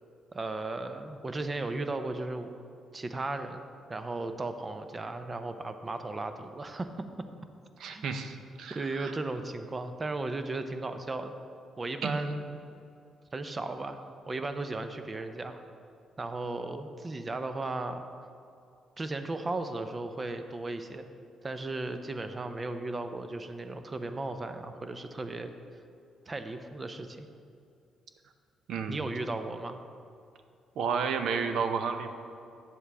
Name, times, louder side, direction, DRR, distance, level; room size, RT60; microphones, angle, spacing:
voice 1, 0.3-2.6 2.9-6.9 7.9-8.1 8.7-11.3 11.8-12.5 13.3-14.0 14.3-15.6 16.2-18.0 19.0-21.1 21.4-25.5 26.3-27.3 28.9-29.8, right 2 dB, 30° right, 8 dB, 0.6 m, -36 dB
voice 2, 7.8-9.1 12.0-12.4 28.7-29.0 30.8-32.2, right 5 dB, 70° right, 7 dB, 0.6 m, -32 dB
9.7 x 7.3 x 3.4 m, 2.5 s
cardioid pair, 90°, 0 cm